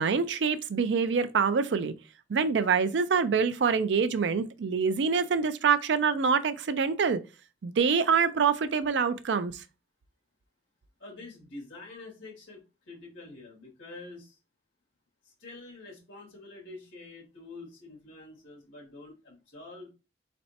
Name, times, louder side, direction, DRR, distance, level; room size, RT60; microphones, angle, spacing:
voice 1, 0.0-1.9 2.3-7.2 7.6-9.6, right 5 dB, 65° right, 0.4 m, -25 dB
voice 2, 11.0-14.4 15.2-19.9, left 2 dB, 85° left, 2.2 m, -47 dB
4.2 x 3.2 x 2.8 m
head